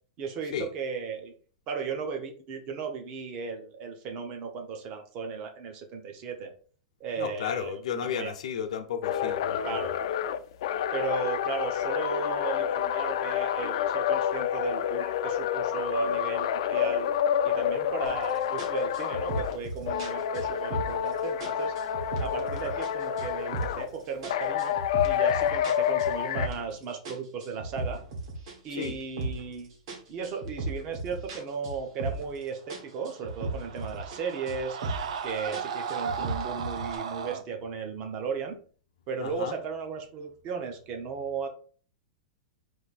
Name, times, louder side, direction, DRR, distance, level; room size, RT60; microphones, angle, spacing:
voice 1, 0.2-1.3 1.7-6.5 7.0-8.3 9.6-9.9 10.9-17.1 17.4-21.7 22.2-24.8 25.0-28.0 28.6-29.7 30.1-34.8 35.2-38.6 39.1-41.5, right 5 dB, 30° right, 0.7 m, -35 dB
voice 2, 7.2-9.9 28.7-29.0 39.2-39.5, left 8 dB, 85° left, 0.7 m, -33 dB
sound 1, 9.0-19.6 19.9-23.9 24.3-26.5, left 9 dB, 55° left, 0.4 m, -28 dB
sound 2, 18.0-18.2 18.6-21.1 21.4-22.9 23.2-23.9 24.2-26.7 27.1-29.5 29.9-32.4 32.7-34.2 34.5-35.2 35.5-37.0, right 2 dB, 50° right, 1.4 m, -36 dB
Screaming, 33.0-37.4, right 6 dB, 80° right, 0.5 m, -36 dB
4.8 x 2.7 x 4.1 m
supercardioid pair, 175°, 4 cm